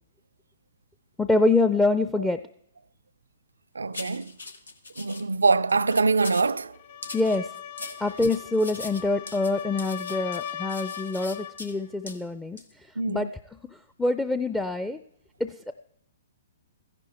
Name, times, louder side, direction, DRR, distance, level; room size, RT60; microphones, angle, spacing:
voice 1, 1.2-2.5 7.1-7.5 8.0-12.6 13.1-13.3 14.0-15.0 15.4-15.7, left 2 dB, 5° left, 0.5 m, -25 dB
voice 2, 3.8-4.3 5.0-6.7 13.0-13.3, right 4 dB, 85° right, 0.4 m, -24 dB
sound 1, 3.9-5.2 5.7-6.5 7.0-11.7 12.1-12.2 12.6-12.7, left 3 dB, 85° left, 1.3 m, -41 dB
sound 2, 6.7-11.7, left 9 dB, 50° left, 0.7 m, -39 dB
14.5 x 10.5 x 4.2 m
hypercardioid pair, 125°, 0 cm